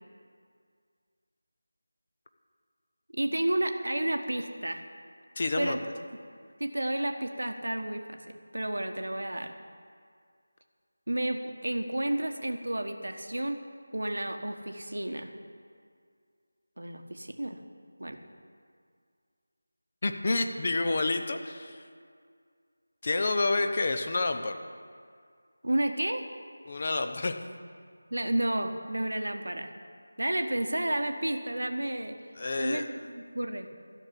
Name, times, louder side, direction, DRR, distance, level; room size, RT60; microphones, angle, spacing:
voice 1, 3.1-4.8 5.6-5.8 6.6-8.2 8.5-9.5 11.1-13.6 13.9-15.3 16.8-17.6 18.0-18.2 25.6-26.2 28.1-29.7 30.2-32.2 32.6-33.7, right 1 dB, 80° right, 5 dB, 1.2 m, -31 dB
voice 2, 5.4-5.8 20.0-21.8 23.0-24.6 26.7-27.3 32.3-32.9, left 2 dB, 40° left, 7 dB, 0.9 m, -29 dB
13.0 x 6.6 x 9.9 m, 2.1 s
figure-of-eight pair, 165°, 0 cm